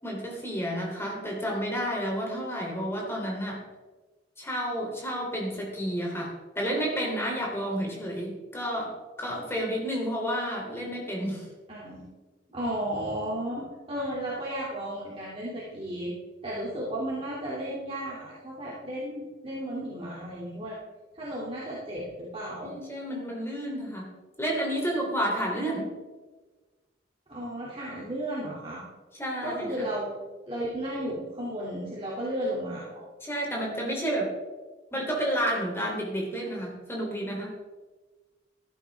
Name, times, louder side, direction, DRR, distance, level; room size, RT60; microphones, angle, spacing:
voice 1, 0.0-3.6 4.4-11.5 22.6-24.1 24.4-25.9 29.2-29.9 33.2-34.3 34.9-37.6, equal, 15° left, -2 dB, 3.3 m, -31 dB
voice 2, 11.7-12.0 12.5-16.1 16.4-20.7 21.1-22.7 27.3-28.8 29.4-33.0, right 1 dB, 30° right, -6 dB, 2.8 m, -34 dB
15.0 x 11.5 x 3.6 m, 1.3 s
head